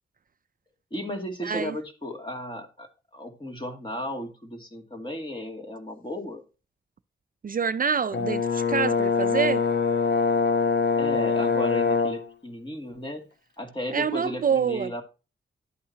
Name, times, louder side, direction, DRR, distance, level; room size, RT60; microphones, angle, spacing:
voice 1, 0.9-6.4 11.0-13.3 13.6-15.0, equal, 25° left, 2.5 m, -35 dB
voice 2, 1.4-1.8 7.4-9.6 13.9-14.9, right 6 dB, 45° right, 0.5 m, -26 dB
Brass instrument, 8.1-12.3, left 5 dB, 60° left, 1.1 m, -24 dB
11.0 x 8.5 x 2.8 m
cardioid pair, 80°, 20 cm